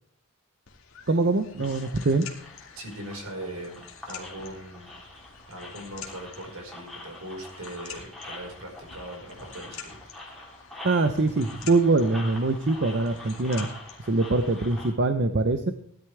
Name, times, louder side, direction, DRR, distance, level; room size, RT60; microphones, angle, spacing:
sound 1, 0.7-14.9, left 7 dB, 65° left, 2.1 m, -47 dB
voice 1, 1.1-2.3 10.8-13.7 14.1-15.7, right 3 dB, 50° right, 8 dB, 0.7 m, -23 dB
sound 2, 1.6-14.9, left 2 dB, ahead, 3.1 m, -45 dB
voice 2, 2.7-4.9 5.5-10.0, right 1 dB, 75° right, 1 dB, 4.8 m, -40 dB
16.5 x 11.5 x 3.4 m, 0.63 s
head